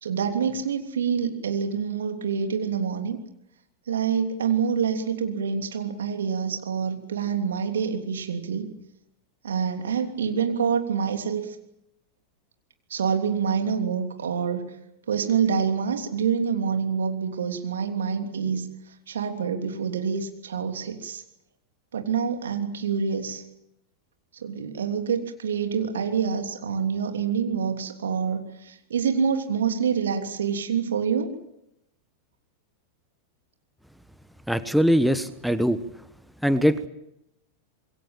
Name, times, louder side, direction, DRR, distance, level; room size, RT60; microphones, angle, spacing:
voice 1, 0.0-3.2 3.9-8.7 9.4-11.6 12.9-14.6 15.1-18.7 19.1-21.2 21.9-23.4 24.4-31.3, right 6 dB, 65° right, 5 dB, 3.2 m, -26 dB
voice 2, 34.5-35.8 36.4-36.9, equal, ahead, 13 dB, 1.2 m, -21 dB
26.0 x 22.0 x 7.4 m, 0.83 s
figure-of-eight pair, 90°, 0 cm